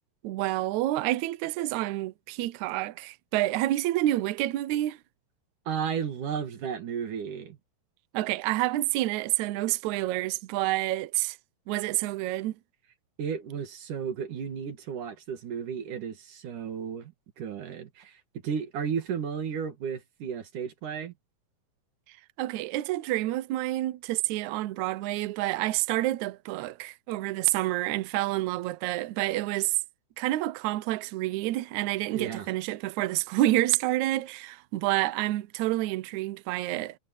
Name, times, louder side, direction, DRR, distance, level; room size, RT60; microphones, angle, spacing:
voice 1, 0.2-5.0 8.1-11.4 11.7-12.5 22.4-29.8 30.2-37.0, right 16 dB, 90° right, 1.6 m, -28 dB
voice 2, 5.7-7.6 13.2-21.1 32.1-32.5, right 7 dB, 60° right, 3.6 m, -34 dB
omnidirectional pair, 4.3 m